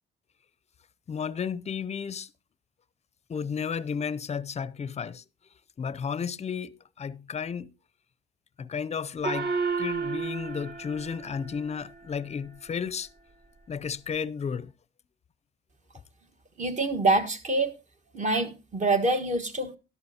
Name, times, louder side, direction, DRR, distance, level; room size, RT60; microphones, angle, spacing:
voice 1, 1.1-2.3 3.3-5.2 5.8-7.7 8.6-13.1 13.7-14.7, left 6 dB, 35° left, 0.5 m, -33 dB
Gong, 9.2-12.1, right 5 dB, 55° right, 1.9 m, -32 dB
voice 2, 16.6-17.7 18.1-19.8, right 2 dB, 35° right, 1.4 m, -25 dB
12.5 x 11.0 x 2.8 m
cardioid pair, 90°, 20 cm